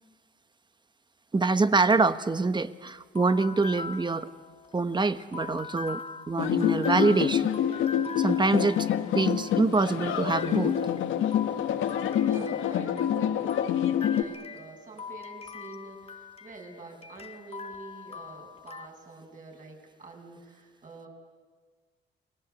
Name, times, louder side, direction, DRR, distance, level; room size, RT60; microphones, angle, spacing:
voice 1, 1.3-4.3 4.7-6.0 6.3-7.5 8.2-8.8 9.1-10.7, right 3 dB, 20° right, 12 dB, 1.2 m, -25 dB
sound 1, 2.2-18.9, left 5 dB, 30° left, 1.4 m, -43 dB
sound 2, 6.4-14.2, left 10 dB, 80° left, 1.4 m, -27 dB
voice 2, 12.2-21.1, right 3 dB, 40° right, 1 dB, 7.4 m, -47 dB
30.0 x 20.0 x 8.2 m, 1.5 s
cardioid pair, 90°, 20 cm